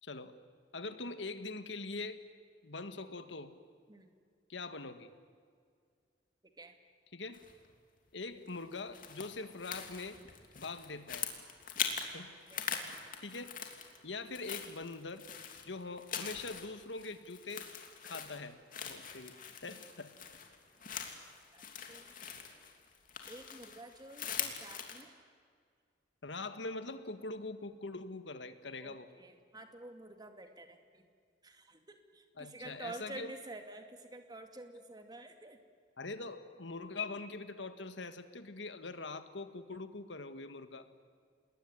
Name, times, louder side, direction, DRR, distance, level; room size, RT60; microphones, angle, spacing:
voice 1, 0.0-0.4 0.7-2.2 2.6-3.5 4.5-5.1 7.1-7.4 8.1-10.2 10.5-11.3 12.1-12.3 13.2-13.6 14.0-15.3 15.6-17.7 18.0-19.4 19.6-20.1 26.2-29.1 32.4-33.3 36.0-40.9, left 3 dB, 90° left, 10 dB, 1.8 m, -43 dB
sound 1, 7.3-7.7 8.5-12.1 12.4-14.0 14.3-25.0, left 7 dB, 50° left, 3.0 m, -42 dB
voice 2, 12.5-13.0 19.7-19.8 21.5-22.1 23.3-25.1 28.8-31.1 31.4-35.6, right 2 dB, 25° right, 6 dB, 2.4 m, -50 dB
28.5 x 20.5 x 9.7 m, 2.1 s
head